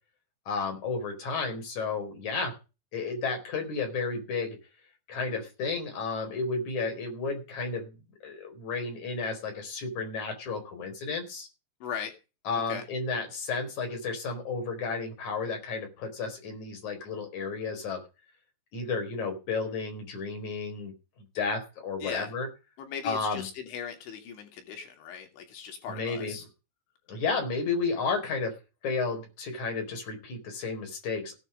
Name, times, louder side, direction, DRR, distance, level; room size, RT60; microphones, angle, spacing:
voice 1, 0.5-2.6 2.9-4.6 5.1-8.0 8.2-11.5 12.5-18.0 18.7-20.9 21.4-22.5 23.0-23.5 25.9-26.4 27.1-28.5 28.8-31.4, left 4 dB, 40° left, 4 dB, 5.6 m, -32 dB
voice 2, 11.8-12.1 12.7-12.8 22.0-22.3 22.8-26.4, left 7 dB, 90° left, 4 dB, 5.1 m, -38 dB
17.0 x 9.7 x 5.2 m, 0.30 s
omnidirectional pair, 5.2 m